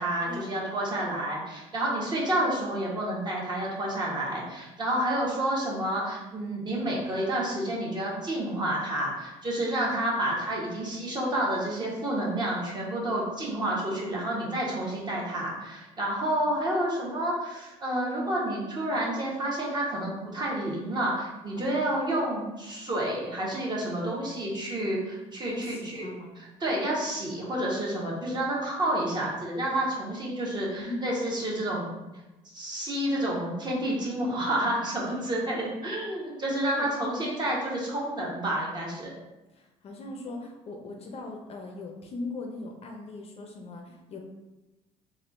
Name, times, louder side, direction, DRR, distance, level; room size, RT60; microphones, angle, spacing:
voice 1, 0.0-26.1 26.4-31.9 32.5-39.1, right 1 dB, 30° right, -5 dB, 1.1 m, -29 dB
voice 2, 25.5-26.4 30.8-31.0 36.8-36.9 39.5-44.2, left 2 dB, 45° left, 2 dB, 0.5 m, -39 dB
3.4 x 2.4 x 2.5 m, 1.0 s
supercardioid pair, 85°, 15 cm